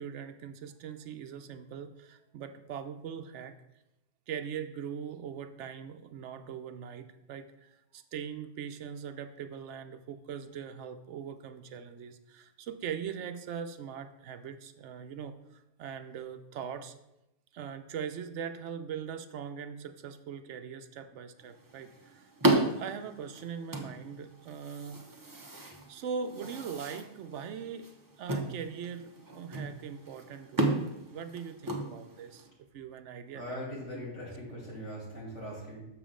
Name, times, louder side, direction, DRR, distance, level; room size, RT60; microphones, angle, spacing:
voice 1, 0.0-3.5 4.3-16.9 17.5-25.0 25.9-27.9 28.2-30.8 31.1-32.5 32.7-34.1, right 7 dB, 75° right, 9 dB, 0.9 m, -41 dB
sound 1, 21.4-32.5, right 2 dB, 20° right, 0.7 m, -34 dB
voice 2, 33.3-35.9, equal, 80° left, -4 dB, 3.1 m, -41 dB
7.1 x 6.6 x 3.7 m, 0.90 s
omnidirectional pair, 1.2 m